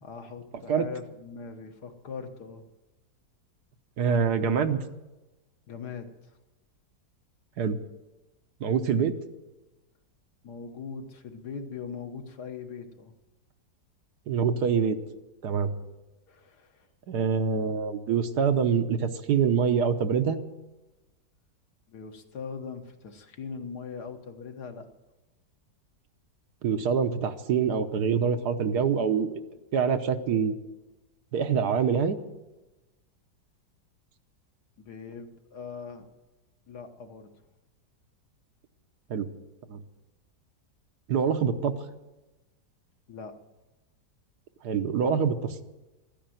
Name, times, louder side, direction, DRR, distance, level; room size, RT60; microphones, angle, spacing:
voice 1, 0.0-2.6 5.7-6.1 10.4-13.1 16.3-16.9 21.9-24.9 34.8-36.1 36.7-37.3 43.1-43.3, left 5 dB, 65° left, 5 dB, 1.8 m, -41 dB
voice 2, 4.0-4.8 7.6-7.8 8.6-9.1 14.3-15.0 15.4-15.7 17.1-20.4 26.6-29.4 29.7-30.6 31.3-32.2 39.1-39.3 39.7-39.8 41.1-41.7 44.6-45.6, right 6 dB, 65° right, 8 dB, 1.4 m, -25 dB
14.0 x 10.0 x 9.2 m, 1.1 s
omnidirectional pair, 1.9 m